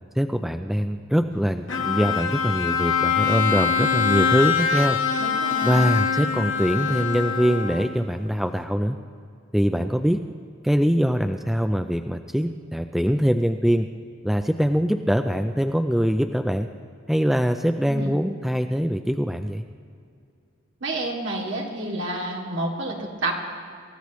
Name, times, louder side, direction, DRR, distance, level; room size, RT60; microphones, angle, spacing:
voice 1, 0.2-5.0 5.6-9.0 9.5-10.2 10.6-13.9 14.2-16.7 17.1-19.6, equal, ahead, 6 dB, 0.3 m, -23 dB
Bowed string instrument, 1.7-8.1, left 6 dB, 65° left, 1.5 m, -24 dB
voice 2, 5.2-5.8 17.8-18.2 20.8-23.4, right 2 dB, 65° right, -2 dB, 2.5 m, -29 dB
27.0 x 14.5 x 3.1 m, 2.3 s
head